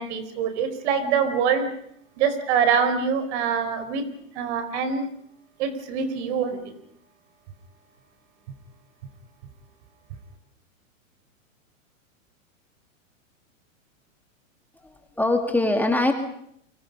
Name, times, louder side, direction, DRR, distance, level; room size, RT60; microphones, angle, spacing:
voice 1, 0.0-1.7 2.2-4.0 4.3-5.1 5.6-6.6, right 6 dB, 55° right, 10 dB, 4.8 m, -24 dB
voice 2, 14.8-16.1, left 2 dB, 5° left, 4 dB, 2.3 m, -23 dB
29.5 x 24.5 x 5.5 m, 0.70 s
hypercardioid pair, 130°, 40 cm